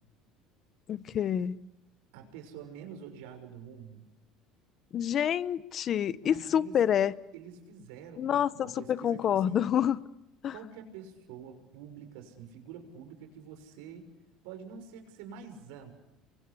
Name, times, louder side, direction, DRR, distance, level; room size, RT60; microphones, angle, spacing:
voice 1, 0.9-1.6 4.9-7.1 8.2-10.0 10.4-10.5, left 9 dB, 45° left, 1.0 m, -27 dB
voice 2, 2.1-4.1 6.2-6.8 7.3-9.7 10.5-14.1 14.4-15.9, right 7 dB, 85° right, 6.4 m, -47 dB
29.0 x 23.5 x 8.5 m
supercardioid pair, 115°, 0 cm